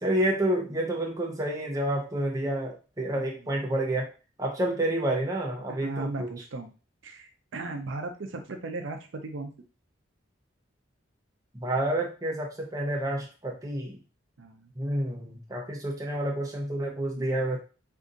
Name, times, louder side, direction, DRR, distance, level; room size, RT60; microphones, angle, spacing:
voice 1, 0.0-4.1 4.4-6.3 11.5-14.0 14.8-17.6, right 1 dB, 15° right, -1 dB, 0.6 m, -29 dB
voice 2, 5.7-6.7 7.0-9.5 14.4-14.7 17.2-17.5, right 3 dB, 70° right, 5 dB, 0.5 m, -37 dB
2.6 x 2.5 x 3.8 m, 0.33 s
head